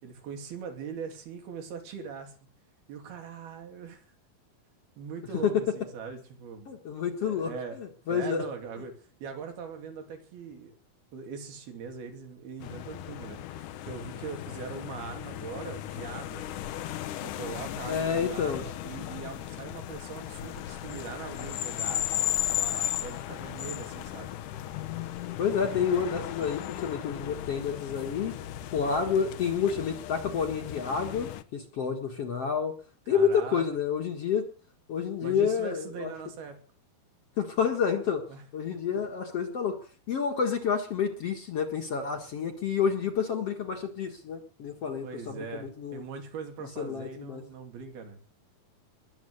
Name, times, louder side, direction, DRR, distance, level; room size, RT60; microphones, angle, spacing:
voice 1, 0.0-2.3 2.9-4.1 5.0-6.7 7.2-7.8 8.1-10.7 11.1-13.4 13.8-16.4 17.2-22.1 22.4-24.3 33.1-33.6 35.2-36.6 38.3-38.4 38.9-39.0 45.0-48.2, right 6 dB, 80° right, 5 dB, 4.7 m, -41 dB
voice 2, 6.7-7.5 7.8-8.4 17.9-18.6 25.4-28.4 28.7-32.7 33.1-34.4 34.9-36.1 37.4-38.2 38.5-39.8 40.1-46.0 46.8-47.4, left 7 dB, 50° left, 4 dB, 2.2 m, -29 dB
sound 1, 12.6-31.4, left 12 dB, 70° left, 2.1 m, -36 dB
21.5 x 8.1 x 8.0 m, 0.40 s
omnidirectional pair, 4.4 m